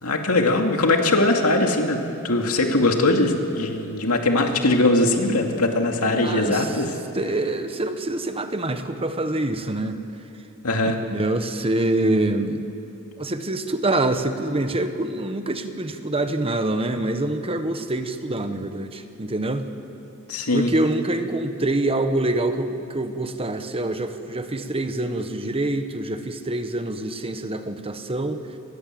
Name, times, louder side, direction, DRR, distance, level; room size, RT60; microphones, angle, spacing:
voice 1, 0.0-2.0 2.2-7.0 10.6-11.0 20.3-20.7, left 2 dB, 75° left, 3 dB, 2.5 m, -21 dB
voice 2, 6.2-6.7 7.1-10.0 11.1-12.6 13.2-19.7 20.5-28.4, right 2 dB, 25° right, 8 dB, 1.2 m, -25 dB
27.0 x 20.5 x 7.8 m, 2.7 s
head